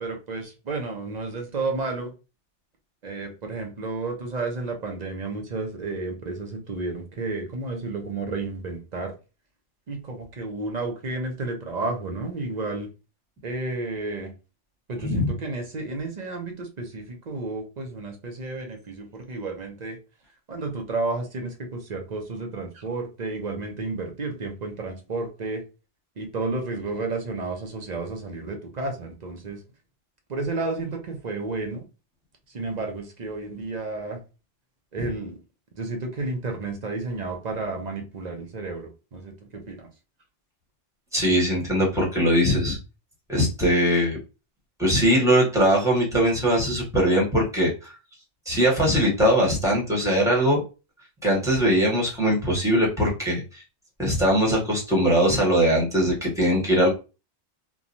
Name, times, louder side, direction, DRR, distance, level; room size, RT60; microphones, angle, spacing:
voice 1, 0.0-2.1 3.0-9.1 9.9-12.9 13.4-14.3 14.9-20.0 20.5-25.6 26.2-29.6 30.3-31.8 32.5-34.2 34.9-35.4 35.8-39.9, right 3 dB, 45° right, 0.7 m, -31 dB
voice 2, 41.1-42.8 43.3-44.2 44.8-47.9 48.4-50.6 51.2-53.6 54.0-56.9, equal, 5° right, 1.1 m, -21 dB
3.0 x 2.3 x 2.5 m
omnidirectional pair, 1.2 m